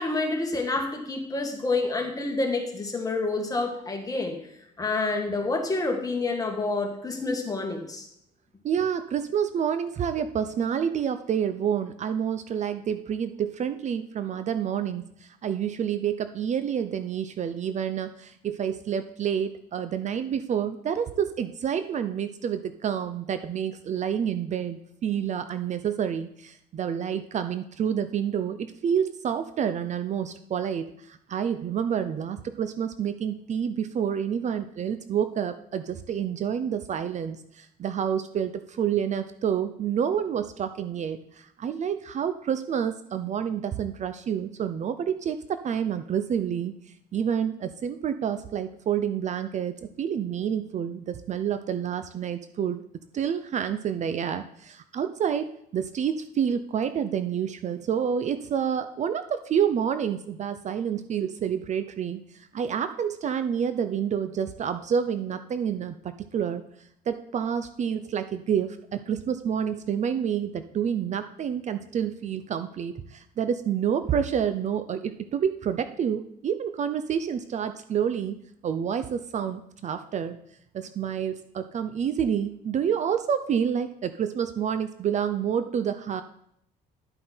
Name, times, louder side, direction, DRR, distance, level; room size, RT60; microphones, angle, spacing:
voice 1, 0.0-4.4 4.8-8.1, left 3 dB, 20° left, 2 dB, 1.9 m, -28 dB
voice 2, 8.6-46.7 47.1-52.8 53.1-66.6 67.1-78.4 78.6-80.4 80.7-86.2, right 8 dB, 45° right, 11 dB, 0.6 m, -28 dB
11.0 x 7.5 x 4.4 m, 0.72 s
cardioid pair, 110°, 17 cm